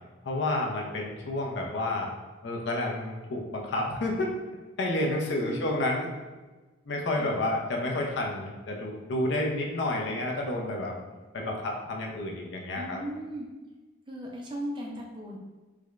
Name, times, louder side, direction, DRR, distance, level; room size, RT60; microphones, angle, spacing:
voice 1, 0.2-2.1 2.4-4.3 4.8-6.1 6.9-10.9 11.3-13.0, left 1 dB, 60° left, 0 dB, 0.5 m, -30 dB
voice 2, 12.7-13.5 14.1-15.4, right 1 dB, 25° right, -1 dB, 0.4 m, -37 dB
4.7 x 2.1 x 2.4 m, 1.2 s
head